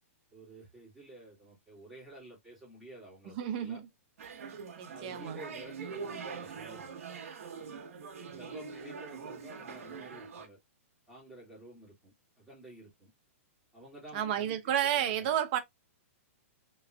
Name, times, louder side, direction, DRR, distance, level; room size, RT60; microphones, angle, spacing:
voice 1, 0.3-3.8 4.9-7.1 8.3-10.6 11.1-13.1 13.7-14.6 14.9-15.4, right 2 dB, 5° right, 2.2 m, -51 dB
voice 2, 3.3-3.8 4.8-5.4 14.1-15.6, right 10 dB, 40° right, 0.7 m, -31 dB
sound 1, 4.2-10.5, right 5 dB, 75° right, 1.0 m, -43 dB
3.4 x 3.2 x 2.2 m
hypercardioid pair, 150°, 8 cm